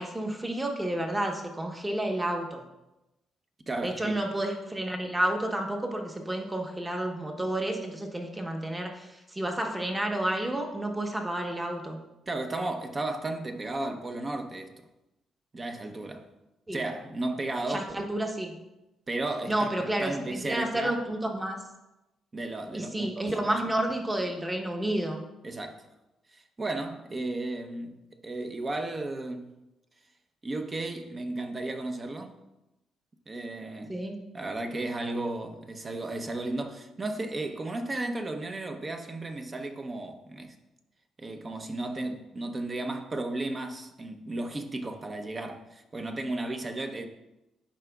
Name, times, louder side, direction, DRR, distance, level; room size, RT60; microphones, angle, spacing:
voice 1, 0.0-2.6 3.8-12.0 16.7-16.8 17.7-18.5 19.5-21.6 22.7-25.2 33.9-34.2, right 1 dB, 15° right, 1.1 m, -30 dB
voice 2, 3.7-4.2 12.3-14.7 15.5-16.3 16.7-18.0 19.1-20.9 22.3-23.4 25.4-25.8 26.3-28.0 28.2-29.6 30.4-32.3 33.3-34.0 34.3-40.5 41.2-47.1, right 2 dB, 30° right, 0.8 m, -34 dB
11.5 x 4.8 x 2.3 m
cardioid pair, 90°, 0 cm